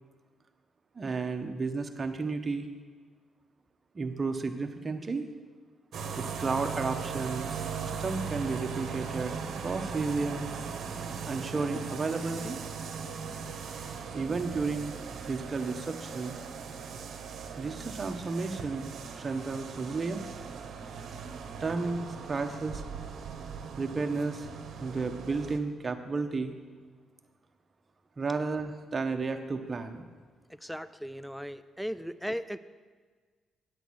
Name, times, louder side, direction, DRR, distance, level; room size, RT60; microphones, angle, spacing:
voice 1, 1.0-2.7 3.9-5.3 6.2-7.6 8.0-9.4 9.6-10.5 11.2-12.6 14.1-14.9 15.2-16.3 17.6-20.2 21.6-22.8 23.8-24.5 24.8-26.5 28.2-30.0, right 4 dB, 30° right, 6 dB, 0.8 m, -32 dB
sound 1, 5.9-25.6, right 6 dB, 65° right, 0.9 m, -39 dB
voice 2, 30.5-32.6, equal, ahead, 12 dB, 0.4 m, -37 dB
8.3 x 8.1 x 6.1 m, 1.5 s
cardioid pair, 90°, 0 cm